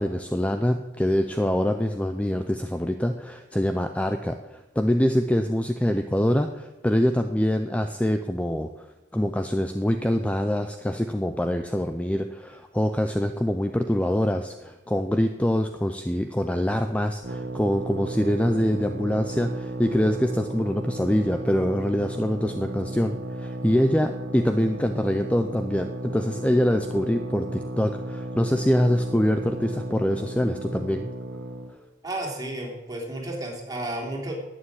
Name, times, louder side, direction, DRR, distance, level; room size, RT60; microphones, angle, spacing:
voice 1, 0.0-8.7 9.1-31.1, equal, 5° left, 7 dB, 0.5 m, -24 dB
sound 1, 17.2-31.7, right 1 dB, 55° right, 1.3 m, -34 dB
voice 2, 32.0-34.3, right 1 dB, 20° right, -1 dB, 3.1 m, -32 dB
11.5 x 9.0 x 8.6 m, 1.1 s
head